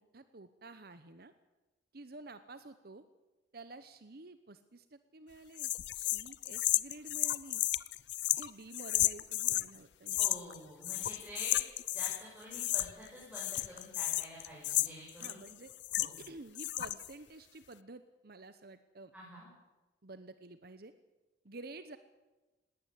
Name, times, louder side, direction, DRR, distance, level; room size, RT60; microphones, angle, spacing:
voice 1, 0.0-1.3 1.9-3.0 3.5-7.6 8.3-10.2 15.2-15.7 16.2-19.1 20.0-20.9 21.4-22.0, right 2 dB, 55° right, 12 dB, 1.0 m, -51 dB
sound 1, 5.6-9.7 10.1-10.6 10.8-12.2 12.5-13.1 13.3-16.3 16.5-17.1, left 15 dB, 70° left, 0.6 m, -33 dB
voice 2, 10.2-11.6 11.9-15.4 16.0-16.2 19.1-19.5, equal, 5° right, -7 dB, 6.9 m, -48 dB
20.0 x 17.5 x 8.4 m, 1.1 s
head